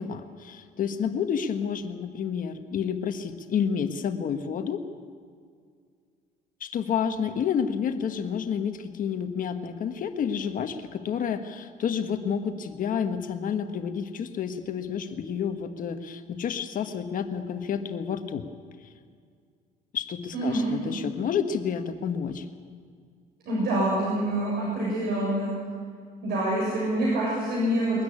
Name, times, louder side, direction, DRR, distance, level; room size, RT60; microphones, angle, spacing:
voice 1, 0.0-4.8 6.6-18.5 19.9-22.4, left 7 dB, 55° left, 7 dB, 1.3 m, -30 dB
voice 2, 20.3-20.7 23.5-25.5 26.2-28.0, right 1 dB, 70° right, -5 dB, 7.4 m, -26 dB
22.5 x 13.0 x 9.9 m, 2.1 s
cardioid pair, 110°, 17 cm